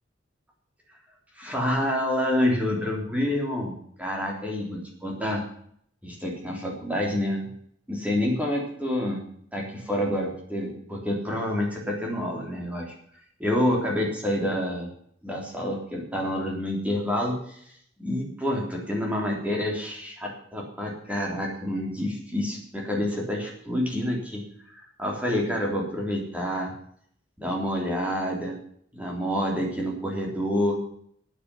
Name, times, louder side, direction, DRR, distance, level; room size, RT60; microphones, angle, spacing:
voice 1, 1.4-3.7 4.0-5.4 6.0-7.4 7.9-9.2 9.5-12.9 13.4-14.9 15.2-17.6 18.0-24.4 24.8-26.7 27.4-28.6 28.9-30.8, left 1 dB, 5° right, -2 dB, 3.5 m, -28 dB
9.7 x 9.3 x 9.7 m, 0.66 s
head